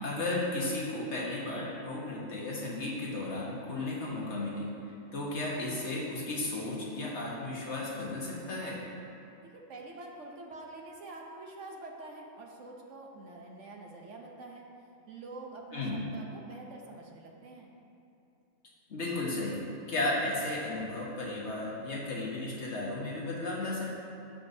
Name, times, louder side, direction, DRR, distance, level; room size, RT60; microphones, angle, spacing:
voice 1, 0.0-4.7 5.1-8.8 15.7-16.0 18.9-19.6 19.9-23.9, left 2 dB, 55° left, -4 dB, 1.5 m, -34 dB
voice 2, 9.4-14.6 15.1-17.7, right 2 dB, 65° right, 0 dB, 1.2 m, -46 dB
15.0 x 5.3 x 2.7 m, 2.7 s
omnidirectional pair, 1.4 m